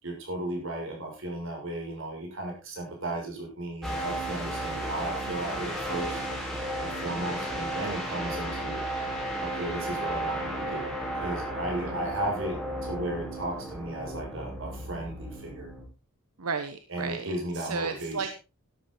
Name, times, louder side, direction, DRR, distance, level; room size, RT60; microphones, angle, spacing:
voice 1, 0.0-6.2 6.8-8.8 9.4-10.9 11.1-15.7 16.9-18.3, right 1 dB, 60° right, 0 dB, 6.5 m, -35 dB
sound 1, 3.8-15.8, right 1 dB, ahead, 4.5 m, -34 dB
voice 2, 16.4-18.3, right 5 dB, 85° right, 9 dB, 1.1 m, -34 dB
12.5 x 12.5 x 3.9 m, 0.30 s
head